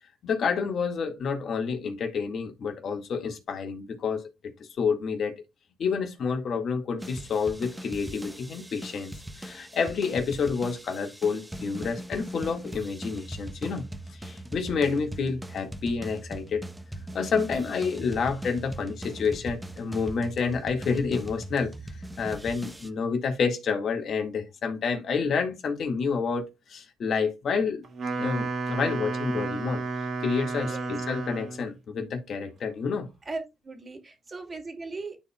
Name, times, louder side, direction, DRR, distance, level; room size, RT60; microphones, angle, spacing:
voice 1, 0.2-5.4 5.8-16.6 17.1-21.7 22.2-27.8 28.2-29.8 30.2-33.1, left 5 dB, 60° left, 1.9 m, -29 dB
sound 1, 7.0-22.9, right 1 dB, 10° right, 0.9 m, -40 dB
Wind instrument woodwind instrument, 27.8-31.7, right 3 dB, 55° right, 2.1 m, -32 dB
voice 2, 30.6-31.0 33.2-35.2, right 3 dB, 30° right, 2.3 m, -38 dB
12.5 x 4.4 x 2.3 m
cardioid pair, 90°, 0 cm